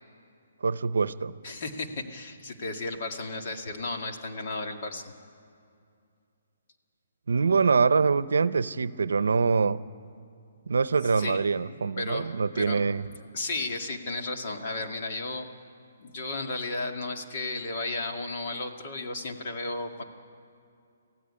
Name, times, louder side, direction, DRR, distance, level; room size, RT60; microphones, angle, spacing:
voice 1, 0.6-1.4 7.3-9.8 10.7-13.0, right 5 dB, 85° right, 16 dB, 0.7 m, -24 dB
voice 2, 1.4-5.1 11.2-12.9 13.3-15.5 16.0-20.0, left 2 dB, 45° left, 4 dB, 2.0 m, -34 dB
24.5 x 15.5 x 9.9 m, 2.5 s
hypercardioid pair, 165°, 0 cm